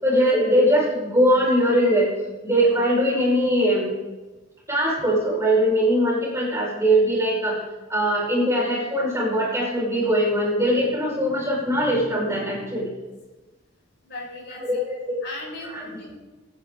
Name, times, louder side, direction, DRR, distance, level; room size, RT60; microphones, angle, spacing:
voice 1, 0.0-2.1 2.4-3.9 4.7-7.6 7.9-12.9 14.7-15.2, equal, 15° right, -4 dB, 4.7 m, -21 dB
voice 2, 14.0-14.6 15.2-16.2, left 2 dB, 60° left, -2 dB, 4.9 m, -38 dB
23.0 x 9.2 x 3.7 m, 1.2 s
head